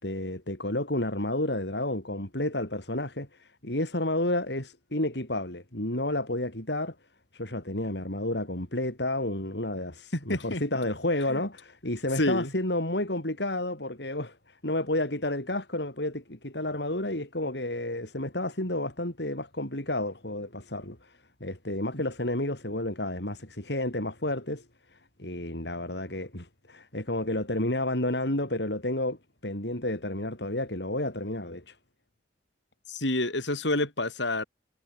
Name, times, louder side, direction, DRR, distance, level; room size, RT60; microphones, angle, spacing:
voice 1, 0.0-6.9 7.3-14.4 14.6-21.1 21.4-24.6 25.2-29.2 29.4-31.7, left 1 dB, 65° left, 5.1 m, -31 dB
voice 2, 10.1-10.6 11.3-11.4 12.2-12.5 21.9-22.0 32.9-34.4, left 1 dB, 85° left, 8.0 m, -28 dB
head